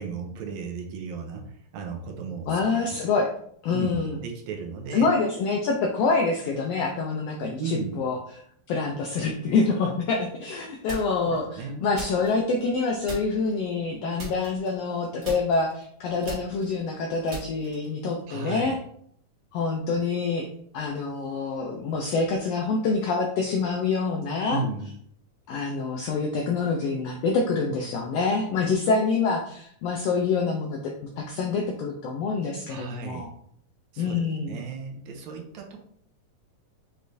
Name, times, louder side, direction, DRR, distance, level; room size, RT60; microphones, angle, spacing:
voice 1, 0.0-2.6 3.7-5.1 7.6-8.0 11.3-11.9 18.3-18.7 24.5-24.9 32.7-33.3 33.9-34.2 34.5-35.8, right 5 dB, 75° right, 2 dB, 1.9 m, -35 dB
voice 2, 2.5-3.3 3.6-4.2 4.9-8.2 8.7-18.8 19.5-20.5 20.7-24.6 25.5-33.3 34.0-34.6, left 4 dB, 80° left, 1 dB, 1.4 m, -26 dB
sound 1, 10.9-11.4 11.9-12.8 13.1-13.6 14.2-15.0 15.2-18.0, right 4 dB, 55° right, 2.5 m, -39 dB
6.5 x 3.1 x 2.6 m, 0.65 s
omnidirectional pair, 3.4 m